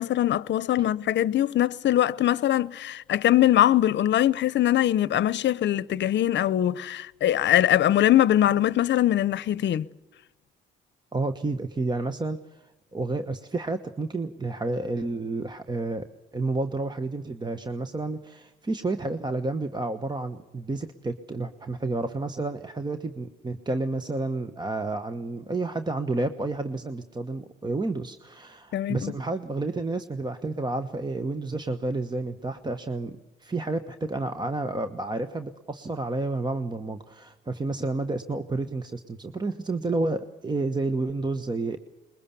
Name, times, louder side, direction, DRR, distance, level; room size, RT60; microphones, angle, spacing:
voice 1, 0.0-9.9 28.7-29.1, left 12 dB, 65° left, 0.8 m, -22 dB
voice 2, 11.1-16.1 16.3-41.8, right 2 dB, 20° right, 1.2 m, -30 dB
22.5 x 21.5 x 7.1 m
cardioid pair, 90°, 20 cm